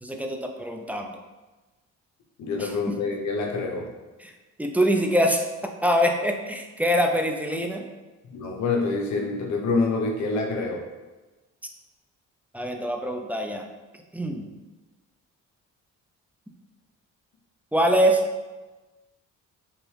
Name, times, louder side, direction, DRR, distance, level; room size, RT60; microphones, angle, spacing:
voice 1, 0.0-1.2 2.6-3.0 4.2-4.3 4.6-7.8 12.5-13.6 14.1-14.5 17.7-18.2, equal, 5° right, 3 dB, 0.3 m, -24 dB
voice 2, 2.4-3.9 8.3-10.8, left 3 dB, 65° left, 1 dB, 0.7 m, -26 dB
3.5 x 3.0 x 3.2 m, 1.2 s
cardioid pair, 90°, 30 cm